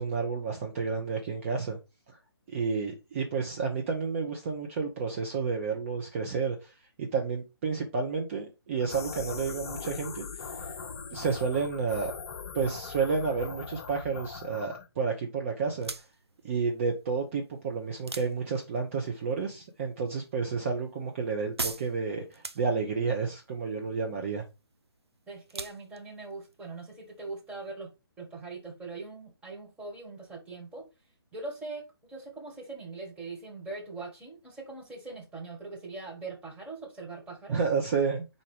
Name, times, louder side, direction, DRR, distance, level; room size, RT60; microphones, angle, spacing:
voice 1, 0.0-1.8 2.1-2.2 2.5-10.5 11.1-12.1 12.5-15.9 16.4-24.4 37.5-38.2, right 5 dB, 30° right, 1.0 m, -31 dB
sound 1, 8.8-14.9, left 5 dB, 35° left, 0.8 m, -41 dB
sound 2, 15.7-27.7, right 3 dB, 80° right, 0.7 m, -44 dB
voice 2, 25.3-27.9 28.2-30.8 31.3-37.6, right 3 dB, 10° right, 1.7 m, -41 dB
4.8 x 4.2 x 4.9 m
figure-of-eight pair, 140°, 13 cm